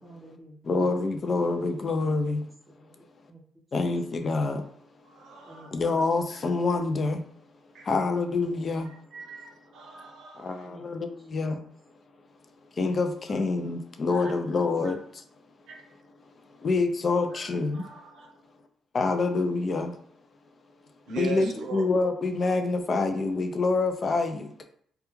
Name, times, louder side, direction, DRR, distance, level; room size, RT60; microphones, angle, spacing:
voice 1, 0.0-0.9 2.2-2.4 2.7-3.4 5.5-5.7 7.9-8.2 8.9-9.0 10.6-10.8 11.2-11.4, equal, 15° right, -4 dB, 0.5 m, -51 dB
voice 2, 0.6-2.5 3.7-4.7 5.7-7.3 7.8-8.9 10.4-11.6 12.8-15.0 16.6-17.8 18.9-20.0 21.2-24.7, left 3 dB, 40° left, 7 dB, 0.4 m, -26 dB
voice 3, 5.0-5.7 6.3-6.4 7.7-7.9 8.8-10.7 13.3-13.4 14.1-14.3 14.8-14.9 15.7-15.8 17.3-18.3 21.1-21.8, right 2 dB, 75° right, 1 dB, 0.7 m, -40 dB
2.2 x 2.2 x 3.0 m, 0.63 s
cardioid pair, 90°, 0 cm